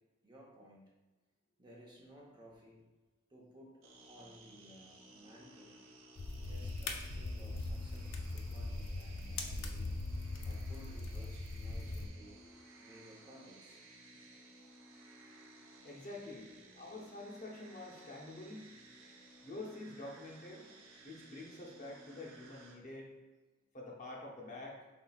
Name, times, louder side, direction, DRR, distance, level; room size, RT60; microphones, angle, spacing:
voice 1, 0.2-0.8 1.6-2.8 3.3-5.8 6.3-10.0 10.4-13.8, equal, 20° right, -3 dB, 0.8 m, -57 dB
sound 1, 3.8-22.7, right 2 dB, 65° right, 0.7 m, -58 dB
sound 2, 6.2-12.1, left 2 dB, 60° left, 0.5 m, -40 dB
voice 2, 15.8-18.7 19.4-20.7 21.0-23.1 23.7-24.8, left 2 dB, 35° left, -3 dB, 0.8 m, -47 dB
5.6 x 3.9 x 2.3 m, 1.2 s
head